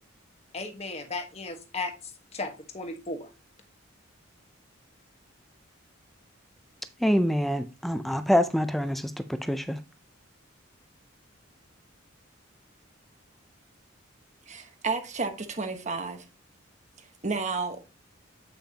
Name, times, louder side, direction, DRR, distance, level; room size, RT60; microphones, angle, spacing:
voice 1, 0.5-1.9 2.3-3.3, left 3 dB, 30° left, 1.3 m, -35 dB
voice 2, 7.0-9.1 9.4-9.8, equal, ahead, 0.4 m, -25 dB
voice 3, 14.5-16.2 17.0-17.9, right 4 dB, 35° right, 1.1 m, -32 dB
8.5 x 5.6 x 2.8 m
head